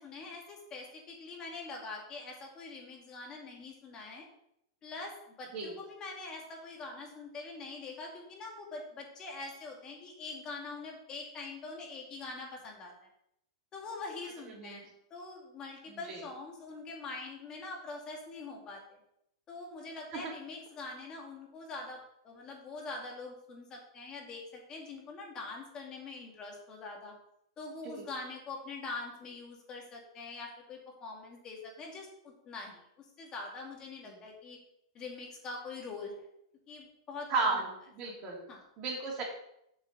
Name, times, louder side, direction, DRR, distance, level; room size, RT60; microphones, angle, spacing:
voice 1, 0.0-4.3 4.8-12.9 13.7-19.0 19.5-27.1 27.6-34.6 34.9-36.2 36.7-37.6 38.5-38.7, left 3 dB, 30° left, 0 dB, 2.4 m, -44 dB
voice 2, 15.9-16.2 20.1-20.3 27.8-28.0 34.0-34.2 37.3-37.7 38.0-38.4 38.8-39.2, right 3 dB, 40° right, -2 dB, 3.3 m, -34 dB
7.8 x 5.3 x 6.8 m, 0.77 s
hypercardioid pair, 130°, 3 cm